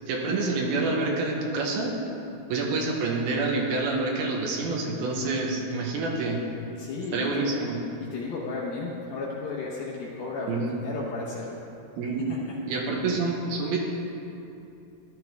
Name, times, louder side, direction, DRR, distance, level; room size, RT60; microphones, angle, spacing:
voice 1, 0.1-1.9 2.5-6.4 7.1-7.8 10.5-10.8 12.0-12.3 12.7-13.8, right 3 dB, 75° right, 0 dB, 3.0 m, -27 dB
voice 2, 6.8-7.4 8.0-11.6 12.3-12.6, left 3 dB, 75° left, -4 dB, 2.7 m, -34 dB
14.0 x 11.0 x 3.6 m, 2.8 s
omnidirectional pair, 4.5 m